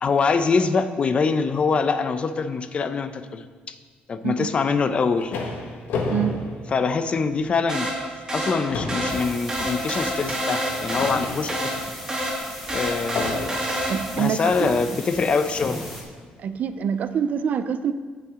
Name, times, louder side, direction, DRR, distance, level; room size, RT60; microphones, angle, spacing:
voice 1, 0.0-3.8 4.1-5.3 6.7-7.9 8.3-11.7 12.7-13.6 14.2-15.8, left 4 dB, 35° left, 10 dB, 0.6 m, -24 dB
sound 1, 4.8-7.4 7.9-8.1 8.4-11.9 13.2-13.9 14.8-14.9 15.6-16.1, left 3 dB, 80° left, 1.4 m, -32 dB
voice 2, 6.1-6.5 13.9-14.8 16.4-17.9, right 8 dB, 55° right, 12 dB, 0.4 m, -26 dB
sound 2, 7.7-14.3, right 1 dB, 20° right, 2.5 m, -28 dB
sound 3, 9.1-16.0, left 1 dB, 5° left, 2.8 m, -38 dB
17.0 x 5.8 x 3.7 m, 1.5 s
cardioid pair, 130°, 3 cm